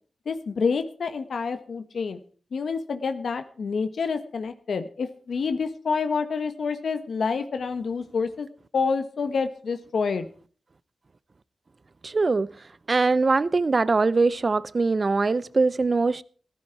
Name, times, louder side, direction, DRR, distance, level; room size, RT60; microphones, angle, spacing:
voice 1, 0.2-2.2 2.5-8.5 8.7-10.3, left 5 dB, 80° left, 1.2 m, -28 dB
voice 2, 12.0-12.5 12.9-16.2, right 3 dB, 45° right, 0.6 m, -22 dB
15.5 x 14.0 x 4.6 m
wide cardioid pair, 85°, 0 cm